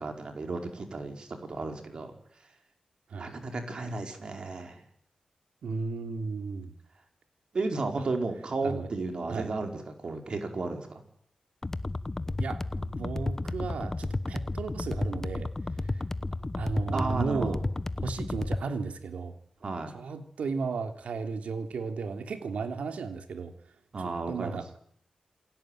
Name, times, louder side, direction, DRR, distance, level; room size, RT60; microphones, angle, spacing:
voice 1, 0.0-2.1 3.2-4.8 7.5-11.0 16.9-17.6 19.6-19.9 23.9-24.6, right 3 dB, 45° right, 5 dB, 5.1 m, -33 dB
voice 2, 5.6-6.7 8.6-8.9 9.3-9.5 12.4-15.5 15.9-16.0 16.6-17.6 18.0-19.3 19.9-23.5 24.0-24.6, right 4 dB, 90° right, 7 dB, 3.3 m, -34 dB
sound 1, 11.6-18.6, left 2 dB, 20° left, 1.0 m, -33 dB
28.5 x 19.0 x 9.3 m, 0.66 s
wide cardioid pair, 175°, 2 cm